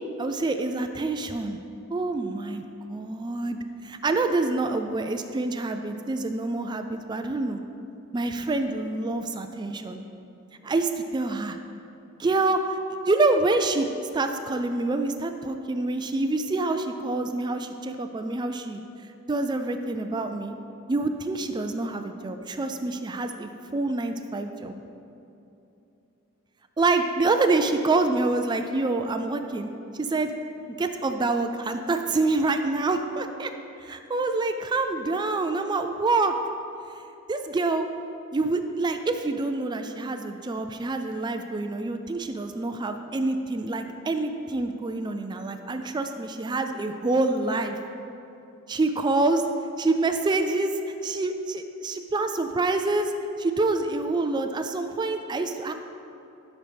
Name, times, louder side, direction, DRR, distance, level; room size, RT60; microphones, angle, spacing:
voice 1, 0.2-1.6 1.9-7.6 8.1-10.0 10.6-11.6 12.2-12.8 13.0-13.9 14.1-20.6 20.9-24.8 26.8-30.3 30.8-33.5 33.8-36.3 37.3-37.9 38.3-47.8 48.7-49.4 49.8-53.1 53.4-55.7, right 3 dB, 20° right, 7 dB, 0.3 m, -26 dB
12.5 x 6.1 x 3.4 m, 2.9 s
head